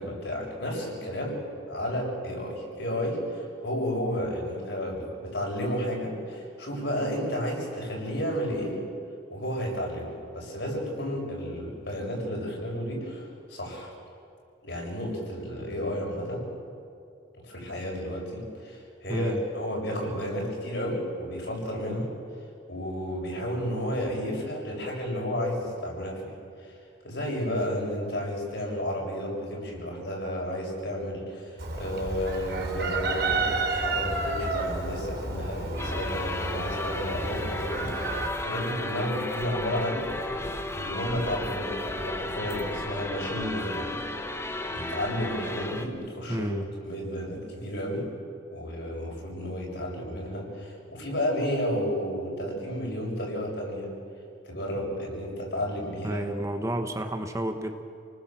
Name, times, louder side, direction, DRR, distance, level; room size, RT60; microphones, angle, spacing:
voice 1, 0.0-1.4 1.7-8.8 9.3-13.9 14.6-16.5 17.4-22.1 22.7-26.3 26.7-26.8 27.0-40.1 40.7-44.0 44.7-46.5 46.8-48.1 48.5-53.9 54.5-56.3, equal, 65° left, -2 dB, 6.9 m, -32 dB
Chicken rooster, 31.6-38.3, right 3 dB, 60° right, 4.4 m, -31 dB
sound 1, 35.8-45.9, left 2 dB, 15° left, 1.2 m, -34 dB
voice 2, 46.3-46.6 56.0-57.8, right 1 dB, 15° right, 6 dB, 1.1 m, -31 dB
30.0 x 19.5 x 7.6 m, 2.5 s
head